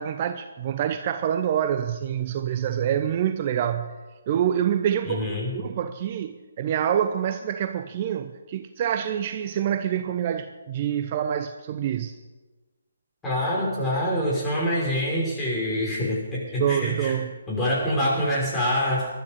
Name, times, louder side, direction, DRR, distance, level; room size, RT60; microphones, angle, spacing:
voice 1, 0.0-4.0 4.3-5.3 5.5-12.2 16.6-17.3, right 9 dB, 35° right, 9 dB, 0.8 m, -26 dB
voice 2, 5.0-5.6 13.2-17.1 17.5-19.1, equal, 10° left, -5 dB, 6.1 m, -25 dB
20.5 x 12.5 x 5.4 m, 1.3 s
figure-of-eight pair, 140°, 0 cm